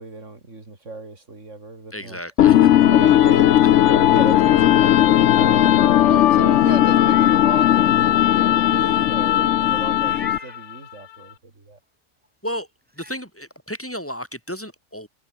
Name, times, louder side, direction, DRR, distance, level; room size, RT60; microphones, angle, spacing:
voice 1, 0.0-2.2 2.8-11.8, right 3 dB, 65° right, 4.4 m, -35 dB
voice 2, 1.9-2.7 12.4-12.7 12.9-15.1, equal, 10° left, 5.3 m, -33 dB
sound 1, 2.4-10.6, left 12 dB, 70° left, 1.0 m, -16 dB
Meow, 6.8-7.4 7.9-8.0 10.0-10.6 12.2-12.3 12.9-13.2, equal, 5° right, 3.3 m, -42 dB
omnidirectional pair, 1.4 m